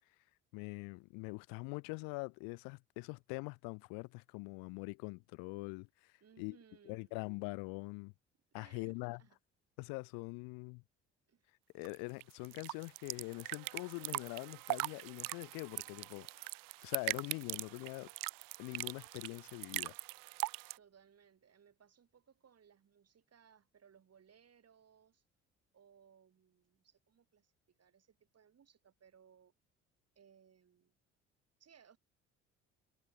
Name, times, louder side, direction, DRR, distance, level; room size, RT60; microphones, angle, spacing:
voice 1, 0.5-6.6 6.8-8.1 8.5-9.2 9.8-10.8 11.7-16.5 16.8-18.1 18.6-19.9, left 31 dB, 70° left, 0.8 m, -44 dB
voice 2, 6.2-7.1 8.5-9.4 11.3-11.5 20.7-25.2 25.7-29.5 30.1-30.9 31.6-32.0, right 7 dB, 45° right, 6.4 m, -65 dB
sound 1, 11.8-20.8, right 24 dB, 70° right, 1.0 m, -41 dB
hypercardioid pair, 55°, 35 cm